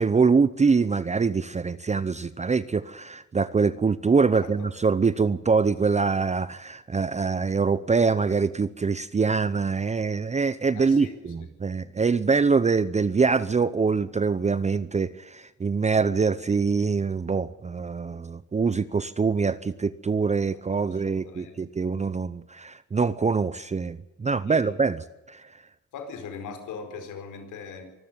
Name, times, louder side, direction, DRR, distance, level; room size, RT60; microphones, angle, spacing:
voice 1, 0.0-25.5, right 5 dB, 25° right, 15 dB, 0.7 m, -24 dB
voice 2, 4.3-4.7 10.7-11.5 20.8-21.5 24.4-24.7 25.9-27.8, left 5 dB, 85° left, 7 dB, 4.8 m, -40 dB
25.0 x 13.0 x 9.3 m, 1.0 s
cardioid pair, 90°, 30 cm